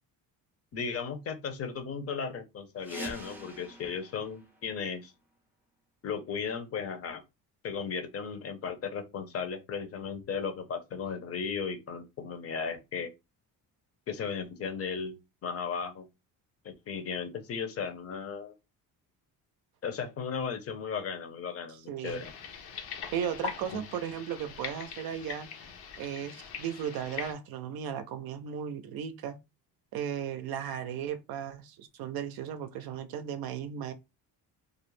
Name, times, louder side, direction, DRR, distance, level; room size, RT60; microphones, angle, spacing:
voice 1, 0.7-5.1 6.0-7.2 7.6-13.1 14.1-16.1 16.6-18.5 19.8-22.2 23.7-23.8, left 6 dB, 40° left, 0.6 m, -36 dB
sound 1, 2.8-5.4, right 1 dB, 5° right, 0.5 m, -45 dB
voice 2, 21.7-22.2 23.1-25.5 26.0-29.4 29.9-33.9, right 9 dB, 70° right, 0.5 m, -36 dB
sound 2, 22.0-27.3, left 7 dB, 75° left, 0.7 m, -42 dB
2.4 x 2.0 x 3.1 m
cardioid pair, 110°, 39 cm